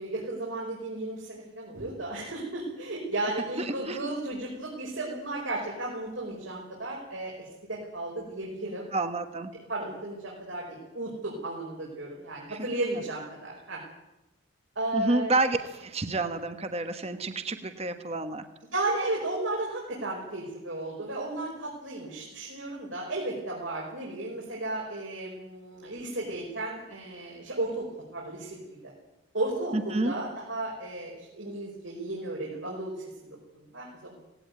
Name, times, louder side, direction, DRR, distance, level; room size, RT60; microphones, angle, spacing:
voice 1, 0.0-8.9 9.7-13.8 14.8-15.3 18.7-27.9 28.1-28.9 29.3-34.1, right 2 dB, 70° right, -3 dB, 5.5 m, -34 dB
voice 2, 3.6-4.1 8.9-9.5 12.5-12.6 14.9-18.4 29.7-30.1, right 2 dB, 30° right, 8 dB, 1.3 m, -29 dB
18.0 x 17.5 x 9.5 m, 0.96 s
head